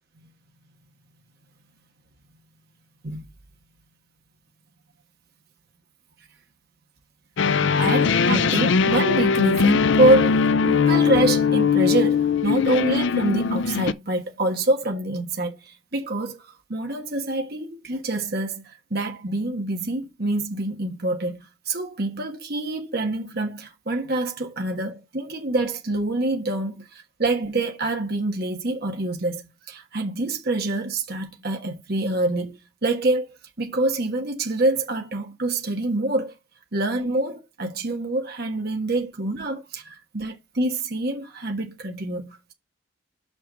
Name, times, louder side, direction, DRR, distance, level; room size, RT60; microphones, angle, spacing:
sound 1, 7.4-13.9, left 5 dB, 60° left, 0.5 m, -20 dB
voice 1, 7.8-16.4 16.7-21.4 21.6-33.3 33.6-36.3 36.7-42.5, right 2 dB, 50° right, 1.5 m, -26 dB
6.0 x 5.9 x 5.1 m
head